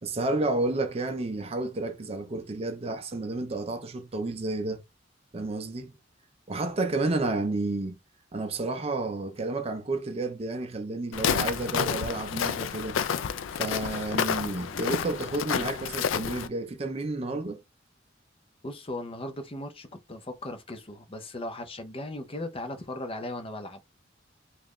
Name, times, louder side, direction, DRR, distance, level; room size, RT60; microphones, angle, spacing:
voice 1, 0.0-4.8 5.3-5.9 6.5-8.0 8.3-13.0 13.5-17.6, right 2 dB, 30° right, 0.5 m, -31 dB
Walk footsteps, 11.1-16.5, left 7 dB, 85° left, 0.4 m, -29 dB
voice 2, 18.6-23.8, left 1 dB, 30° left, 0.6 m, -37 dB
3.8 x 2.4 x 3.1 m
head